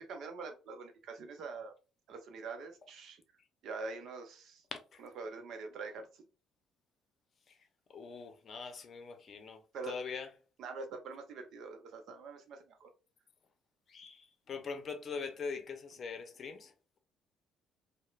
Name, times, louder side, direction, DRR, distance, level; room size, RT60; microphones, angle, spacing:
voice 1, 0.0-1.7 2.1-3.2 3.6-4.6 5.2-6.2 9.7-10.0 10.6-12.9, right 4 dB, 65° right, 0.6 m, -44 dB
voice 2, 4.7-5.0 7.5-7.6 7.9-10.3 13.9-16.7, left 5 dB, 50° left, 0.6 m, -42 dB
3.0 x 2.1 x 2.2 m
supercardioid pair, 65°, 0 cm